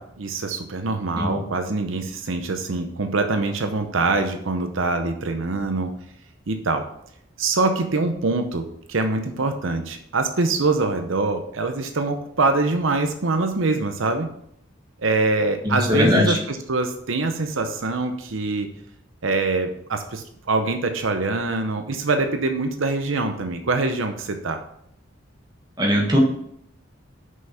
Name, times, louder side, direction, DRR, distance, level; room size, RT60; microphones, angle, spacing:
voice 1, 0.0-5.9 6.5-6.8 7.4-14.3 15.0-18.7 19.2-24.6, right 3 dB, 75° right, 7 dB, 0.7 m, -24 dB
voice 2, 15.6-16.4 25.8-26.2, left 1 dB, 20° right, 0 dB, 1.5 m, -20 dB
6.3 x 5.6 x 5.6 m, 0.71 s
head